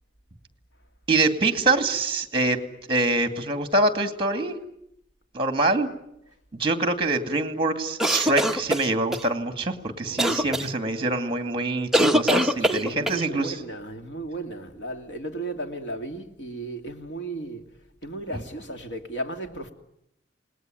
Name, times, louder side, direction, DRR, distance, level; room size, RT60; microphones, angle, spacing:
voice 1, 1.1-4.5 5.3-5.9 6.6-13.5, right 2 dB, 30° right, 2.4 m, -25 dB
sound 1, 8.0-9.2 10.2-10.7 11.9-13.2, equal, ahead, 1.0 m, -22 dB
voice 2, 10.1-10.6 12.6-19.7, right 1 dB, 80° left, 2.9 m, -35 dB
28.0 x 19.5 x 9.3 m
head